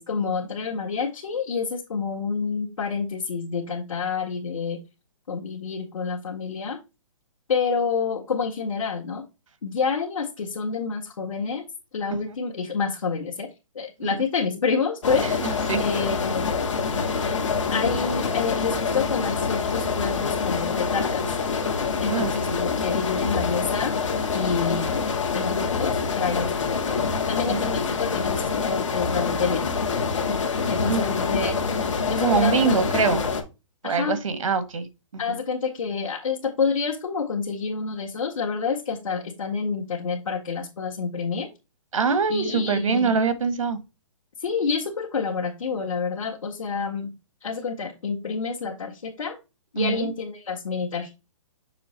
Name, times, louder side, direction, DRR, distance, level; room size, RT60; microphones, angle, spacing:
voice 1, 0.0-4.8 5.3-6.8 7.5-9.2 9.6-11.6 11.9-13.5 13.8-15.3 15.8-16.6 17.7-21.3 22.0-23.9 24.3-24.9 25.3-26.8 27.3-29.6 30.7-31.6 32.1-32.8 33.8-34.2 35.2-41.5 42.3-43.1 44.4-47.1 47.4-49.4 49.7-51.1, left 5 dB, 85° left, 1.7 m, -28 dB
sound 1, 15.0-33.4, left 5 dB, 70° left, 1.7 m, -26 dB
voice 2, 15.2-15.8 22.1-22.6 27.5-27.8 30.9-31.0 32.2-33.2 33.8-34.9 35.1-35.2 41.9-43.8 49.8-50.1, right 5 dB, 85° right, 1.5 m, -24 dB
6.8 x 3.3 x 4.2 m
hypercardioid pair, 180°, 17 cm